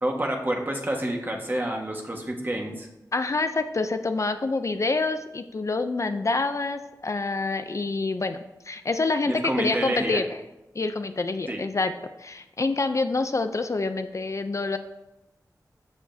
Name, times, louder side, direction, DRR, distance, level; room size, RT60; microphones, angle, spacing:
voice 1, 0.0-2.9 9.3-10.2 11.5-11.6, right 1 dB, 30° right, 1 dB, 1.5 m, -28 dB
voice 2, 3.1-10.4 10.7-11.9 12.2-14.8, left 3 dB, 45° left, 8 dB, 0.5 m, -27 dB
13.5 x 7.0 x 2.7 m, 0.97 s
wide cardioid pair, 70°, 7 cm